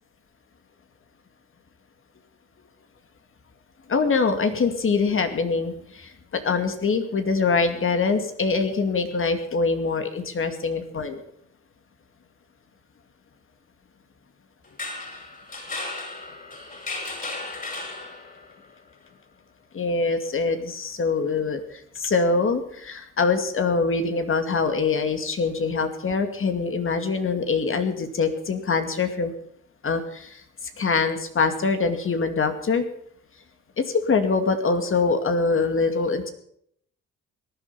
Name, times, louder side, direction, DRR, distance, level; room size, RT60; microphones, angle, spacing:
voice 1, 3.9-11.2 19.7-29.3 29.8-30.4 30.8-32.9 33.8-36.3, left 4 dB, 45° left, 7 dB, 2.4 m, -24 dB
sound 1, 14.6-18.5, left 3 dB, 30° left, 6.1 m, -35 dB
18.5 x 11.5 x 5.7 m, 0.68 s
cardioid pair, 90°, 30 cm